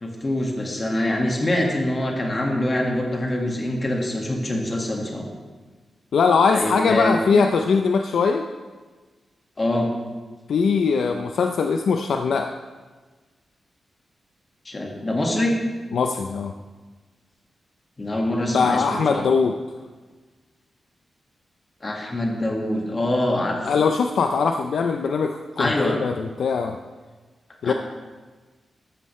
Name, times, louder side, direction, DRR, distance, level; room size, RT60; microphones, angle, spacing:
voice 1, 0.0-5.3 6.5-7.2 9.6-9.9 14.7-15.6 18.0-19.3 21.8-23.6 25.6-26.0 27.6-27.7, left 1 dB, 20° left, 0 dB, 1.8 m, -24 dB
voice 2, 6.1-8.5 10.5-12.5 15.9-16.5 18.5-19.5 23.6-26.8 27.6-27.7, left 5 dB, 75° left, 5 dB, 0.6 m, -21 dB
13.5 x 13.0 x 3.2 m, 1.3 s
wide cardioid pair, 170°, 0 cm